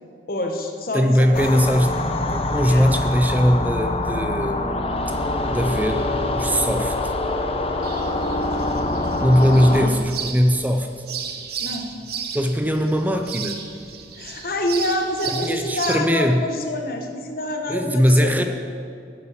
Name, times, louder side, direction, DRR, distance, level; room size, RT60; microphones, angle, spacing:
voice 1, 0.3-1.8 2.6-2.9 9.5-10.0 11.6-11.9 14.2-18.4, left 1 dB, 55° left, 4 dB, 1.1 m, -27 dB
voice 2, 0.9-1.9 2.3-4.6 5.1-5.2 5.5-6.1 6.3-7.1 9.2-10.9 12.3-13.6 15.3-16.4 17.7-18.4, equal, 10° right, 6 dB, 0.5 m, -20 dB
sound 1, 1.3-9.9, left 2 dB, 35° left, 0.6 m, -24 dB
sound 2, 7.8-16.0, right 7 dB, 60° right, 0.8 m, -34 dB
9.2 x 8.3 x 6.4 m, 2.4 s
head